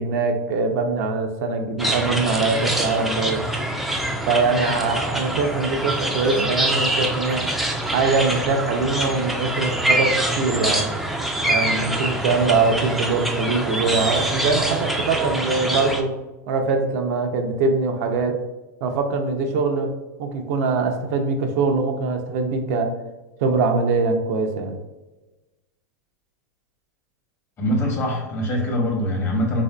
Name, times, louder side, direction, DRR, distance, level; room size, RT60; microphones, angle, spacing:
voice 1, 0.0-3.5 4.3-7.5 7.9-10.9 11.5-16.1 16.5-18.4 18.8-19.9 20.2-22.9 23.4-24.8, right 4 dB, 65° right, 4 dB, 0.5 m, -22 dB
sound 1, 1.8-16.0, right 1 dB, ahead, 0.4 m, -25 dB
voice 2, 27.6-29.6, equal, 30° left, 0 dB, 0.9 m, -23 dB
3.5 x 2.5 x 2.2 m, 1.1 s
hypercardioid pair, 110°, 9 cm